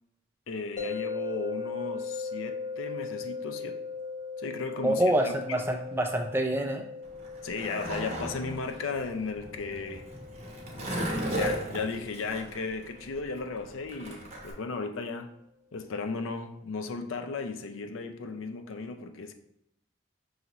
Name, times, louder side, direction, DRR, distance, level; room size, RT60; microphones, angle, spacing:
voice 1, 0.5-3.8 4.4-5.6 7.4-10.1 10.7-15.3 15.7-19.3, left 4 dB, 85° left, 0.5 m, -35 dB
sound 1, 0.8-13.8, left 5 dB, 40° left, 0.9 m, -39 dB
voice 2, 4.8-6.9, right 1 dB, 10° right, 0.3 m, -26 dB
Skateboard, 7.1-14.5, right 1 dB, 35° right, 0.8 m, -36 dB
5.5 x 2.5 x 2.9 m
head